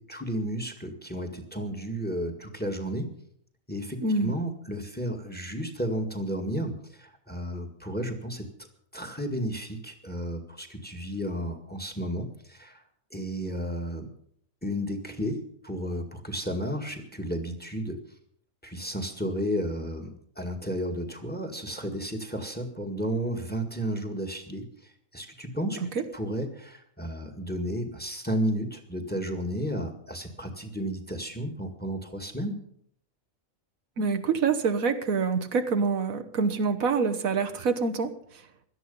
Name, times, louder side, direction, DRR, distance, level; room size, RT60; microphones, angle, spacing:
voice 1, 0.0-3.1 3.7-8.7 8.9-12.8 13.1-14.1 14.6-18.0 18.6-25.8 26.1-32.6, equal, 5° left, 5 dB, 1.9 m, -33 dB
voice 2, 4.0-4.3 25.9-26.0 34.0-38.5, right 5 dB, 85° right, 8 dB, 1.6 m, -26 dB
17.5 x 12.5 x 5.5 m, 0.64 s
omnidirectional pair, 1.4 m